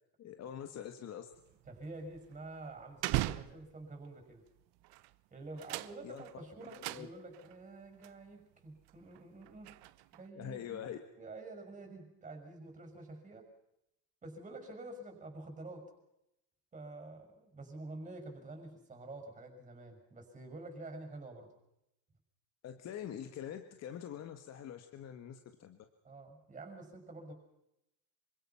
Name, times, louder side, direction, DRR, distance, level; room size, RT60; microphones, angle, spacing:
voice 1, 0.2-1.3 6.0-6.2 6.7-7.1 10.3-11.0 22.6-25.8, left 9 dB, 35° left, 7 dB, 1.7 m, -44 dB
sound 1, 1.3-4.1 4.8-5.2 5.4-7.6 8.0-8.1 8.8-10.3, right 18 dB, 60° right, 1.1 m, -40 dB
voice 2, 1.7-4.4 5.3-9.8 10.1-10.9 11.2-13.5 14.2-15.9 16.7-21.5 26.0-27.3, right 2 dB, 15° right, 5 dB, 6.0 m, -48 dB
26.5 x 25.0 x 5.8 m, 0.85 s
cardioid pair, 150°, 43 cm